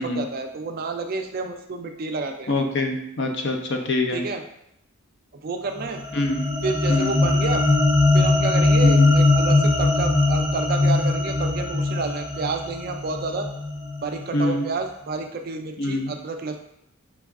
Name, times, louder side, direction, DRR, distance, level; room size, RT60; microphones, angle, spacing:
voice 1, 0.0-2.5 4.1-4.4 5.4-6.0 6.6-7.6 8.1-13.5 14.0-16.6, right 3 dB, 45° right, 5 dB, 0.4 m, -30 dB
voice 2, 2.5-4.2 6.1-6.4 6.9-7.2 8.8-9.1 14.3-14.6 15.8-16.1, left 2 dB, 55° left, 4 dB, 0.5 m, -25 dB
sound 1, 5.8-14.2, left 2 dB, 25° left, 1.1 m, -20 dB
4.6 x 2.3 x 3.5 m, 0.76 s
head